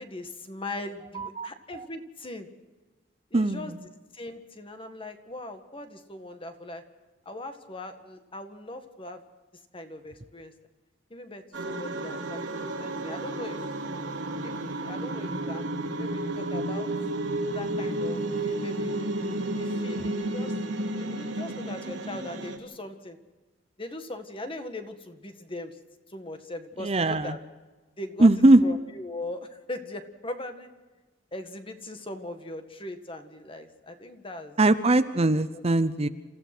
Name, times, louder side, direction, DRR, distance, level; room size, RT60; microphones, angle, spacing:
voice 1, 0.0-2.5 3.3-6.8 7.3-9.2 9.7-10.5 11.1-13.7 14.4-16.9 17.5-19.1 19.5-20.5 20.9-23.2 23.8-25.8 26.1-27.4 28.0-28.3 28.6-30.7 31.3-34.6 35.5-35.6, left 2 dB, 30° left, 7 dB, 1.8 m, -40 dB
voice 2, 1.2-1.8 3.3-3.6 26.8-27.3 28.2-28.6 34.6-36.1, right 2 dB, 35° right, 11 dB, 0.8 m, -21 dB
sound 1, 11.5-22.6, right 1 dB, 80° right, 2.7 m, -32 dB
28.0 x 15.0 x 6.1 m, 1.2 s
head